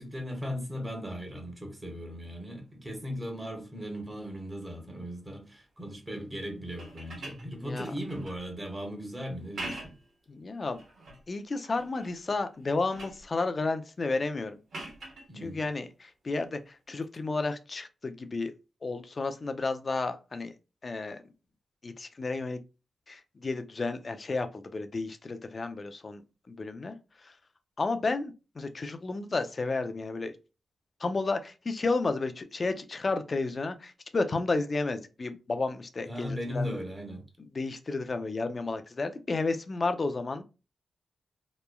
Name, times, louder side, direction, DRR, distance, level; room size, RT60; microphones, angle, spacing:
voice 1, 0.0-9.8 15.3-15.6 36.1-37.2, equal, 25° right, 1.2 m, -37 dB
sound 1, 6.7-8.5 9.4-10.1 10.6-11.2 11.7-12.2 12.5-13.3 14.7-15.3 17.0-17.2, right 2 dB, 75° right, 1.0 m, -43 dB
voice 2, 10.3-10.8 11.3-14.6 15.4-18.5 18.8-20.5 20.8-21.2 21.8-22.6 23.1-27.0 27.2-27.3 27.8-30.4 31.0-36.8 37.4-40.4, left 3 dB, 50° left, 0.4 m, -32 dB
3.0 x 2.1 x 2.2 m
supercardioid pair, 45°, 0 cm